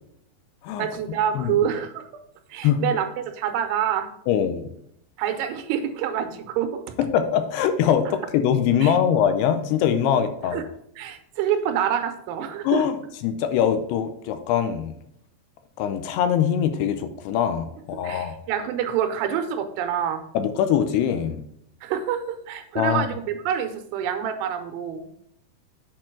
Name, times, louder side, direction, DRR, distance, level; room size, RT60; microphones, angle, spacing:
voice 1, 0.8-2.1 2.5-4.1 5.2-6.8 8.8-9.0 10.5-10.6 11.0-12.8 18.0-20.2 21.8-25.1, right 9 dB, 85° right, 7 dB, 2.8 m, -27 dB
voice 2, 4.3-4.7 7.0-10.6 12.6-13.0 13.2-14.9 15.8-18.3 20.3-21.4 22.8-23.1, left 9 dB, 85° left, 8 dB, 2.6 m, -22 dB
7.6 x 4.5 x 5.9 m, 0.74 s
omnidirectional pair, 4.9 m